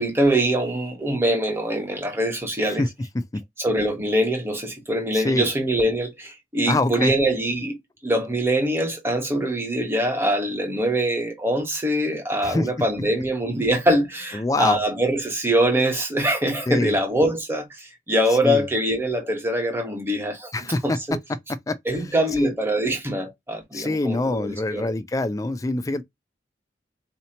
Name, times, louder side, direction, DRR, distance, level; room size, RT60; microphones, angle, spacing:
voice 1, 0.0-2.8 3.6-20.5 20.8-21.2 21.8-24.9, right 1 dB, 15° right, 1.1 m, -23 dB
voice 2, 5.1-5.5 6.7-7.1 12.4-12.7 14.3-14.8 16.7-17.0 18.4-18.6 20.5-21.0 21.7-21.8 22.4-22.5 23.7-26.0, left 2 dB, 20° left, 0.3 m, -24 dB
4.2 x 2.8 x 2.8 m
head